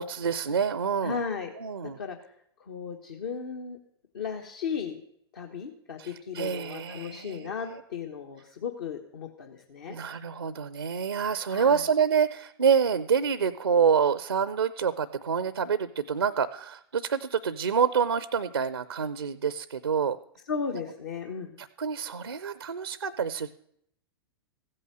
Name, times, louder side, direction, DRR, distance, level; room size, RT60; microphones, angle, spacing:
voice 1, 0.0-1.2 1.6-2.0 6.0-7.8 9.9-20.2 20.7-20.8 21.6-23.5, right 6 dB, 75° right, 15 dB, 0.6 m, -27 dB
voice 2, 1.0-1.5 1.8-2.2 2.6-3.8 4.1-5.0 5.3-10.0 11.5-11.8 20.5-21.6, left 6 dB, 55° left, 3 dB, 1.3 m, -35 dB
15.0 x 8.6 x 6.2 m, 0.70 s
figure-of-eight pair, 100°, 14 cm